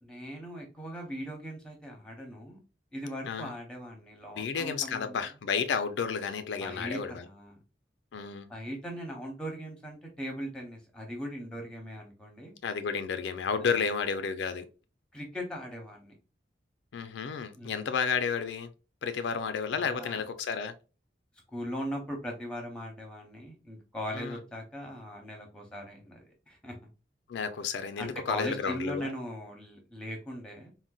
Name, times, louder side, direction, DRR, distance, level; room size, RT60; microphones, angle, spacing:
voice 1, 0.0-2.6 2.9-5.3 6.5-7.6 8.5-12.6 13.7-13.9 15.1-16.2 17.6-17.8 19.6-20.2 21.5-26.8 28.0-30.7, equal, 5° left, 0.7 m, -39 dB
voice 2, 4.4-7.2 8.1-8.5 12.6-14.7 16.9-18.7 19.0-20.7 24.1-24.4 27.3-29.1, left 6 dB, 80° left, 0.4 m, -32 dB
3.8 x 2.1 x 2.2 m
head